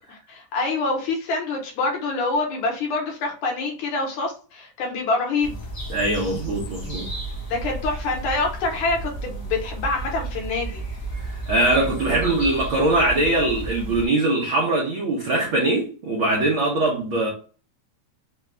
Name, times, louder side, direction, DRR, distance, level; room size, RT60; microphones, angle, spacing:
voice 1, 0.3-5.6 7.5-10.8, left 3 dB, 70° left, 2.3 m, -26 dB
sound 1, 5.4-14.1, right 2 dB, 50° left, 0.9 m, -33 dB
voice 2, 5.9-7.1 11.2-17.3, right 2 dB, 70° right, 1.2 m, -22 dB
5.2 x 2.3 x 3.1 m
omnidirectional pair, 3.7 m